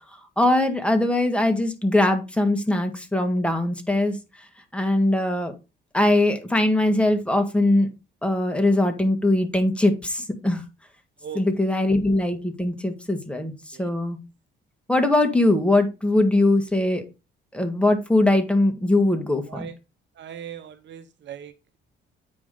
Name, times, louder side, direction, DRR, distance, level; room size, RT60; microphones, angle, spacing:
voice 1, 0.4-4.2 4.7-5.5 5.9-7.9 8.2-10.6 11.3-14.2 14.9-17.0 17.5-19.7, left 1 dB, 5° left, 1.7 m, -21 dB
voice 2, 20.1-21.8, right 8 dB, 65° right, 0.9 m, -39 dB
8.6 x 4.8 x 3.8 m
cardioid pair, 90°, 20 cm